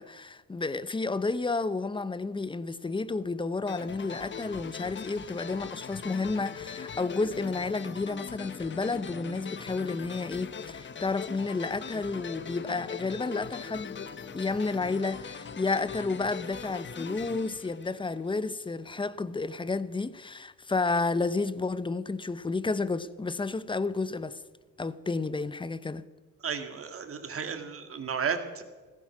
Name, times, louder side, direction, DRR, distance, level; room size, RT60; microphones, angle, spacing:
voice 1, 0.0-14.0 14.3-24.4 24.8-26.0, left 3 dB, 15° left, 0.7 m, -31 dB
sound 1, 3.7-18.5, left 6 dB, 40° left, 1.1 m, -41 dB
voice 2, 26.4-28.6, right 6 dB, 45° right, 2.2 m, -33 dB
15.5 x 14.5 x 6.0 m
cardioid pair, 90°, 30 cm